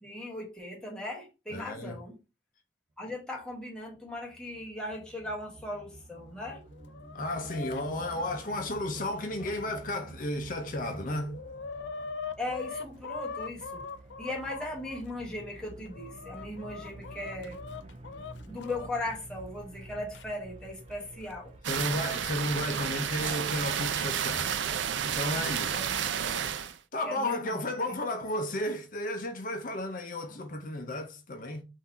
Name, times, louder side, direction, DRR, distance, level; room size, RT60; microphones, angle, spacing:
voice 1, 0.0-2.2 3.0-6.6 12.4-13.8 14.2-17.6 18.5-21.5 25.7-26.2 27.1-27.5 27.8-28.0, left 1 dB, 5° left, 1.3 m, -38 dB
voice 2, 1.5-2.0 7.1-11.3 21.7-24.6 25.0-25.9 26.9-31.6, left 1 dB, 50° left, 0.7 m, -33 dB
sound 1, 3.4-22.6, right 2 dB, 35° right, 0.5 m, -49 dB
Chicken rooster, 6.6-10.1 10.6-10.7 11.0-15.0 15.6-18.9 20.1-20.2 21.2-21.3 22.3-22.7, left 5 dB, 80° left, 0.4 m, -42 dB
sound 2, 21.6-26.8, right 8 dB, 90° right, 0.4 m, -31 dB
3.8 x 2.7 x 4.2 m
head